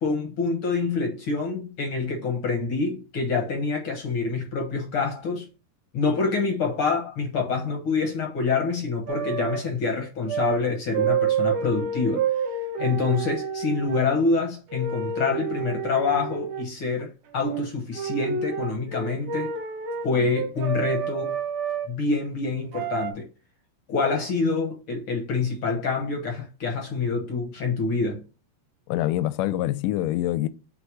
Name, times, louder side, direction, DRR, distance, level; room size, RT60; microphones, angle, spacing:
voice 1, 0.0-5.5 5.9-12.2 12.8-19.5 20.0-21.4 21.9-23.3 23.9-28.2, left 4 dB, 60° left, 1.5 m, -26 dB
sound 1, 9.1-9.6 10.3-10.6 10.9-14.1 14.7-16.7 17.4-17.7 17.9-21.9 22.7-23.1, right 6 dB, 70° right, 2.2 m, -29 dB
voice 2, 28.9-30.5, left 14 dB, 80° left, 2.0 m, -25 dB
5.4 x 4.1 x 4.6 m
omnidirectional pair, 3.9 m